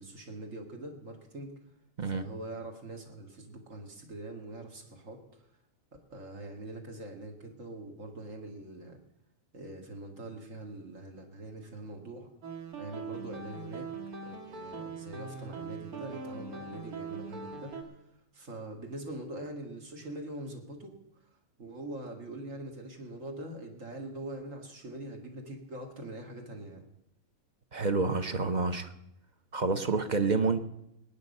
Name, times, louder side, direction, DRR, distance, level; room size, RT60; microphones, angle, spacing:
voice 1, 0.0-1.5 2.0-5.5 6.1-9.0 9.5-12.3 12.8-13.9 14.2-17.7 18.3-20.9 21.2-26.9, right 1 dB, 60° right, 3 dB, 2.4 m, -43 dB
sound 1, 12.4-17.8, right 4 dB, 90° right, 2.1 m, -41 dB
voice 2, 27.7-28.9 29.5-30.6, right 4 dB, 40° right, 9 dB, 0.8 m, -28 dB
20.0 x 9.2 x 5.4 m, 0.81 s
omnidirectional pair, 1.5 m